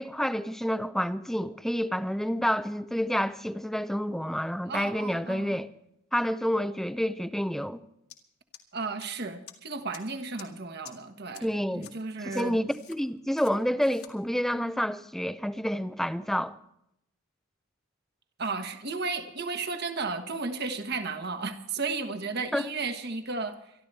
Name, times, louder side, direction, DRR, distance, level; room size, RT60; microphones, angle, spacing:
voice 1, 0.0-5.7 6.1-7.8 11.4-12.0 12.3-16.6 22.5-22.6, equal, ahead, 0.5 m, -29 dB
voice 2, 4.7-5.6 8.7-11.5 11.7-12.6 18.4-23.7, right 4 dB, 50° right, 1.4 m, -34 dB
sound 1, 8.1-8.2 8.5-9.0 9.5-9.6 9.9-10.0 10.4-10.5 10.8-10.9 11.3-11.4 11.8-11.9 12.3-13.0 13.4-13.5 13.8-14.1, left 10 dB, 90° left, 2.1 m, -47 dB
25.0 x 12.5 x 3.3 m
head